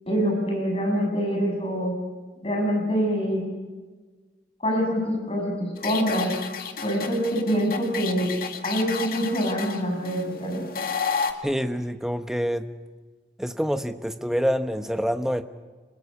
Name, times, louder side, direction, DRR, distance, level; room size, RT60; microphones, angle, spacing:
voice 1, 0.1-2.0 2.4-3.5 4.6-6.3 6.8-8.3 8.6-10.7, equal, 35° left, 1 dB, 6.8 m, -25 dB
sound 1, 5.8-11.3, left 6 dB, 55° left, 2.0 m, -32 dB
voice 2, 11.4-12.7 13.4-15.4, equal, 5° right, 8 dB, 1.0 m, -26 dB
26.0 x 21.5 x 8.5 m, 1.4 s
head